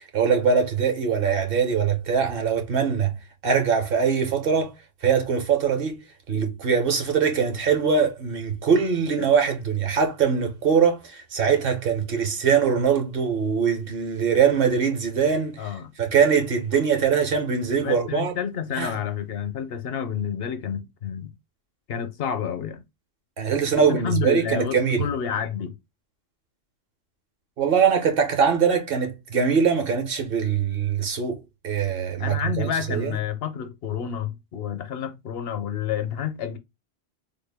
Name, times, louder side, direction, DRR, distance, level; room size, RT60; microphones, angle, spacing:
voice 1, 0.0-3.1 3.4-4.7 5.0-15.6 16.0-18.3 18.7-18.9 23.4-25.1 27.6-33.2, right 6 dB, 60° right, 1.0 m, -22 dB
voice 2, 15.6-15.9 17.8-21.3 21.9-22.8 23.8-25.8 32.2-36.6, left 8 dB, 70° left, 0.8 m, -29 dB
3.6 x 2.2 x 3.3 m
omnidirectional pair, 1.1 m